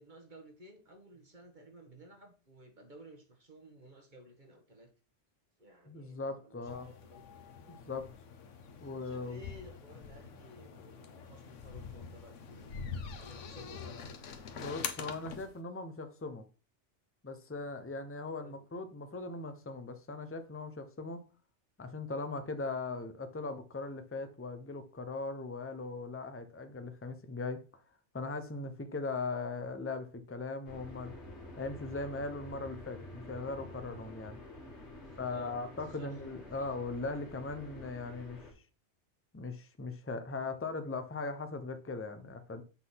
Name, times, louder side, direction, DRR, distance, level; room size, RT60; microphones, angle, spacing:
voice 1, 0.0-4.9 5.6-7.7 8.7-12.7 13.2-14.1 18.4-18.7 35.0-35.5 35.9-36.2 36.6-36.7, equal, 40° right, 1.6 m, -55 dB
voice 2, 5.9-6.9 7.7-8.1 8.8-9.4 14.5-16.4 17.2-21.2 21.8-27.6 28.1-31.1 31.6-34.4 35.2-38.4 39.3-42.6, left 3 dB, 15° left, 0.7 m, -39 dB
sound 1, 6.7-15.5, left 6 dB, 90° left, 1.3 m, -45 dB
sound 2, 30.6-38.5, left 1 dB, 65° left, 2.4 m, -49 dB
8.2 x 3.9 x 5.7 m
omnidirectional pair, 1.2 m